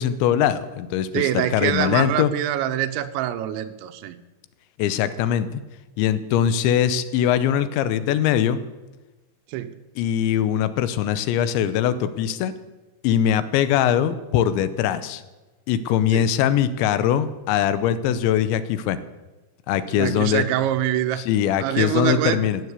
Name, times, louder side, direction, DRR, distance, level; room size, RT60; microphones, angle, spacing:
voice 1, 0.0-2.3 4.8-5.6 6.0-8.6 10.0-12.5 13.0-15.2 15.7-19.0 19.7-20.4 21.3-22.6, left 10 dB, 90° left, 3.1 m, -21 dB
voice 2, 1.1-4.2 9.5-9.8 16.1-16.3 19.9-21.3 21.6-22.4, right 12 dB, 90° right, 3.2 m, -25 dB
17.5 x 7.9 x 8.2 m
omnidirectional pair, 5.1 m